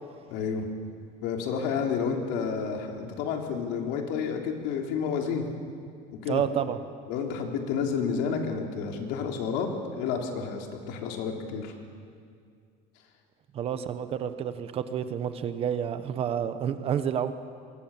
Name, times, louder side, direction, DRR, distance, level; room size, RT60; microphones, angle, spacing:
voice 1, 0.3-0.7 1.2-5.5 6.1-6.4 7.1-11.7, left 6 dB, 75° left, 2 dB, 3.5 m, -30 dB
voice 2, 6.3-6.8 13.5-17.3, right 9 dB, 35° right, 11 dB, 1.1 m, -29 dB
28.0 x 24.0 x 7.3 m, 2.3 s
cardioid pair, 180°, 18 cm